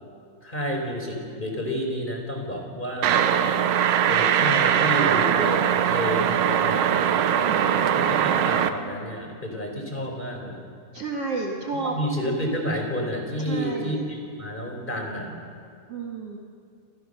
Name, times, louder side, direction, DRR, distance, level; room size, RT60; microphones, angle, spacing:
voice 1, 0.4-3.3 4.1-7.2 8.0-10.6 11.8-15.3, equal, 10° left, 1 dB, 4.2 m, -30 dB
sound 1, 3.0-8.7, right 9 dB, 70° right, 2.2 m, -21 dB
voice 2, 7.4-8.1 10.9-11.9 13.5-14.0 15.9-16.4, right 3 dB, 45° right, 1 dB, 2.6 m, -31 dB
28.5 x 27.5 x 6.7 m, 2.3 s
omnidirectional pair, 4.4 m